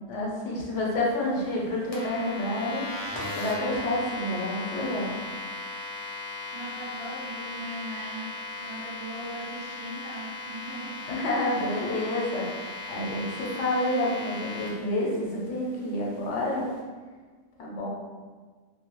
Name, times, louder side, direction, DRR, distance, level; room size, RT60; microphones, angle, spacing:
voice 1, 0.1-2.8 3.4-5.1 11.1-16.7 17.6-17.9, left 1 dB, 75° left, -3 dB, 1.0 m, -29 dB
sound 1, 1.9-14.7, left 2 dB, 50° left, 0.4 m, -37 dB
voice 2, 6.5-8.3 8.6-11.0, right 1 dB, 35° right, -9 dB, 0.5 m, -39 dB
2.5 x 2.2 x 2.9 m, 1.4 s
omnidirectional pair, 1.3 m